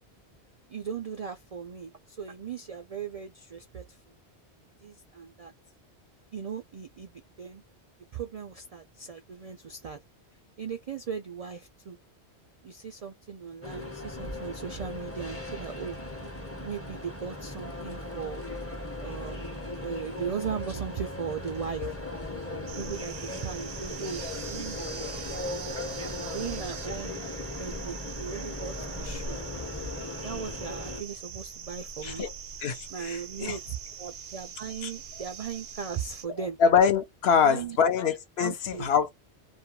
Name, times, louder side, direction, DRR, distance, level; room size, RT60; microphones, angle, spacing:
voice 1, 0.7-4.0 4.8-5.5 6.3-7.6 8.1-10.0 10.6-12.0 12.6-16.0 16.6-18.4 19.0-22.0 22.8-25.2 26.3-27.2 27.6-29.4 30.1-32.3 32.9-36.6 37.3-37.8 38.4-38.9, right 7 dB, 60° right, 0.3 m, -38 dB
sound 1, 13.6-31.0, left 2 dB, 15° left, 0.5 m, -38 dB
sound 2, 22.7-36.3, right 5 dB, 80° right, 0.9 m, -42 dB
voice 2, 32.6-33.6 34.8-34.9 36.6-39.1, left 6 dB, 70° left, 0.8 m, -24 dB
2.4 x 2.2 x 2.9 m
omnidirectional pair, 1.1 m